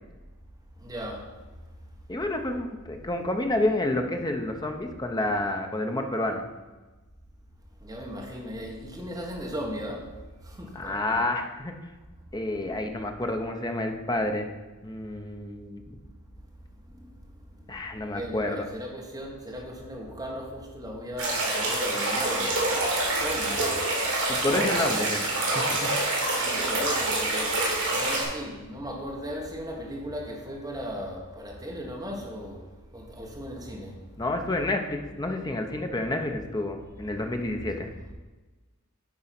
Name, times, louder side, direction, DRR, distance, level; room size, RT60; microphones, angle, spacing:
voice 1, 0.8-1.4 7.8-11.2 16.8-17.1 18.0-23.8 24.4-24.7 26.3-32.6 32.9-34.0, equal, 15° right, -2 dB, 1.5 m, -37 dB
voice 2, 2.1-6.5 10.7-11.7 12.3-14.5 14.8-15.8 17.7-18.7 24.3-25.9 34.2-37.9, left 2 dB, 20° left, 4 dB, 0.7 m, -29 dB
sound 1, 21.2-28.2, right 2 dB, 65° right, 2.9 m, -26 dB
9.7 x 3.9 x 5.9 m, 1.2 s
head